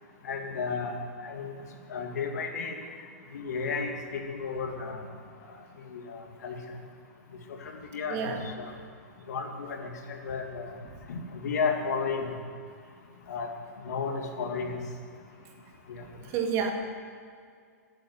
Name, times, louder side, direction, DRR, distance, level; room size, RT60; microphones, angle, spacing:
voice 1, 0.2-0.9 1.2-1.5 1.9-2.7 3.3-5.1 5.9-6.6 7.6-8.7 9.3-10.7 11.1-12.3 13.3-13.5 13.8-14.8 15.9-16.0, left 5 dB, 75° left, 3 dB, 2.4 m, -33 dB
voice 2, 16.3-16.7, right 7 dB, 35° right, 3 dB, 2.1 m, -28 dB
15.5 x 8.4 x 9.6 m, 2.2 s
hypercardioid pair, 150°, 9 cm